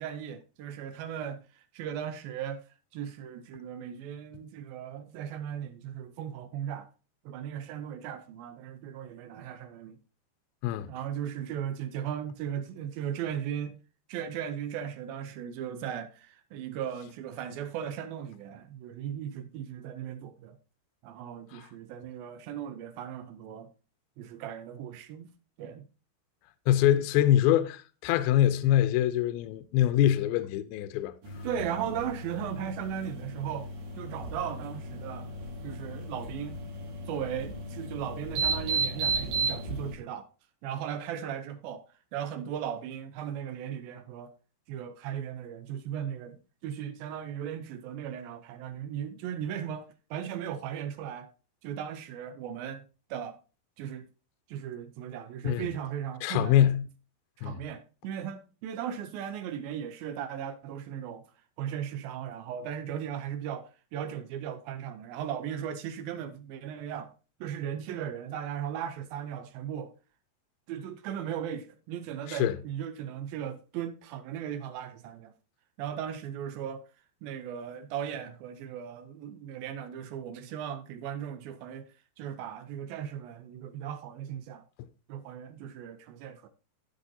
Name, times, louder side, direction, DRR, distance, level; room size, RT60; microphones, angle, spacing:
voice 1, 0.0-2.7 2.9-6.9 7.3-10.0 10.9-13.8 14.1-20.6 21.0-23.7 24.2-25.3 25.6-25.9 31.4-33.7 34.0-35.3 35.6-36.6 37.1-40.3 40.6-41.8 42.1-44.3 44.7-51.3 51.6-52.8 53.1-53.4 53.8-54.1 54.5-56.7 57.4-61.2 61.6-67.1 67.4-69.9 70.7-75.3 75.8-76.8 77.2-81.9 82.2-84.6 85.1-86.5, right 9 dB, 80° right, 2.3 m, -37 dB
voice 2, 26.7-31.1 55.4-55.7 56.2-56.8 57.4-57.6 72.3-72.6, left 12 dB, 80° left, 2.3 m, -24 dB
sound 1, 31.2-39.9, right 3 dB, 60° right, 3.1 m, -34 dB
14.5 x 5.9 x 2.7 m
omnidirectional pair, 4.7 m